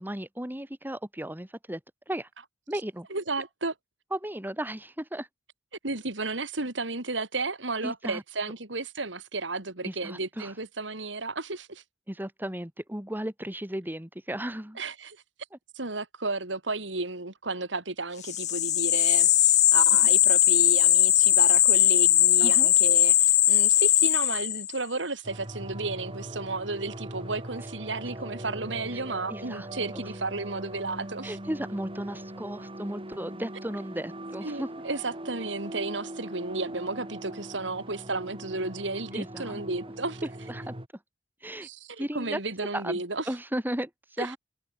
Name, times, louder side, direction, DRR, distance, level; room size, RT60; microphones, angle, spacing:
voice 1, 0.0-1.8 2.1-2.3 2.7-3.1 4.1-5.3 7.8-8.2 9.8-10.5 12.1-14.8 22.4-22.7 28.9-29.0 29.3-29.7 31.2-34.7 39.1-39.6 40.5-40.7 41.4-41.7 42.0-42.4 42.7-44.4, right 1 dB, 10° right, 2.9 m, -35 dB
voice 2, 3.1-3.7 5.8-11.8 14.8-15.2 15.8-31.4 34.4-40.3 41.6-43.3 44.2-44.3, right 3 dB, 85° right, 3.7 m, -33 dB
sound 1, 18.2-24.8, left 12 dB, 40° left, 0.6 m, -20 dB
sound 2, 25.2-40.9, right 1 dB, 30° right, 3.9 m, -41 dB
head